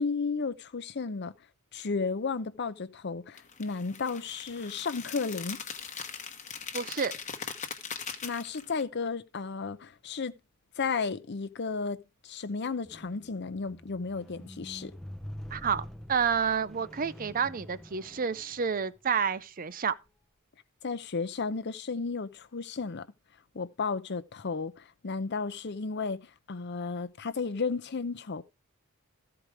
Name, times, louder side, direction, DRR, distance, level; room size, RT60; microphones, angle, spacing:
voice 1, 0.0-1.3 1.7-5.6 8.2-10.3 10.8-14.9 20.8-23.0 23.5-28.4, left 4 dB, 50° left, 0.6 m, -33 dB
sound 1, 3.4-8.8, left 6 dB, 35° left, 1.2 m, -40 dB
voice 2, 6.7-7.1 15.5-19.9, right 6 dB, 40° right, 0.5 m, -29 dB
Squeak, 12.8-19.2 20.0-20.1, equal, ahead, 0.7 m, -46 dB
14.5 x 4.8 x 4.8 m
head